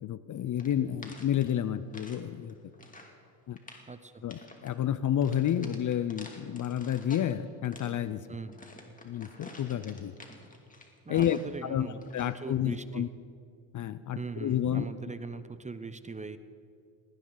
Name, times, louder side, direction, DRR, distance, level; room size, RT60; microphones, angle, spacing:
voice 1, 0.0-2.5 3.5-3.6 4.2-8.2 9.0-10.1 11.1-13.1 13.7-14.9, left 10 dB, 40° left, 15 dB, 0.6 m, -30 dB
sound 1, 0.6-2.2 2.5-3.2 3.5-3.9 4.3-4.7 5.2-7.3 7.6-11.6 12.0-12.4, left 2 dB, 15° left, 2.5 m, -50 dB
voice 2, 3.9-4.2 8.3-8.6 11.0-13.1 14.1-16.4, right 4 dB, 15° right, 12 dB, 0.7 m, -41 dB
19.5 x 17.5 x 4.0 m, 2.4 s
supercardioid pair, 80°, 50 cm